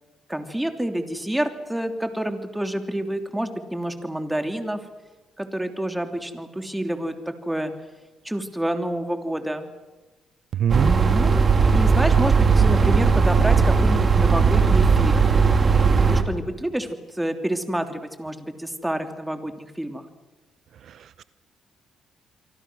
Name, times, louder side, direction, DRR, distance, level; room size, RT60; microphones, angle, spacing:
voice 1, 0.3-4.8 5.4-7.7 8.2-9.7 10.8-15.3 15.8-20.0, right 1 dB, 5° right, 6 dB, 3.2 m, -28 dB
voice 2, 10.5-11.0 20.9-21.2, right 9 dB, 65° right, 15 dB, 0.7 m, -24 dB
sound 1, 10.7-16.2, right 5 dB, 40° right, 2.7 m, -17 dB
28.0 x 24.0 x 6.3 m, 1.2 s
cardioid pair, 90°, 0 cm